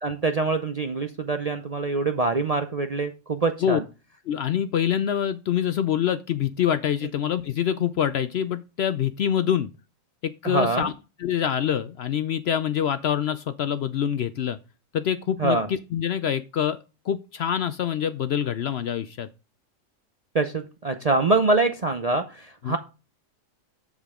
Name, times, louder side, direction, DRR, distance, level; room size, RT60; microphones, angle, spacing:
voice 1, 0.0-3.8 10.4-10.9 15.4-15.7 20.3-22.8, right 3 dB, 45° right, 7 dB, 0.5 m, -24 dB
voice 2, 4.3-9.7 10.2-10.9 11.2-14.6 14.9-16.8 17.1-19.3 22.6-22.8, left 9 dB, 65° left, 13 dB, 0.7 m, -25 dB
7.3 x 7.1 x 3.6 m, 0.30 s
omnidirectional pair, 1.4 m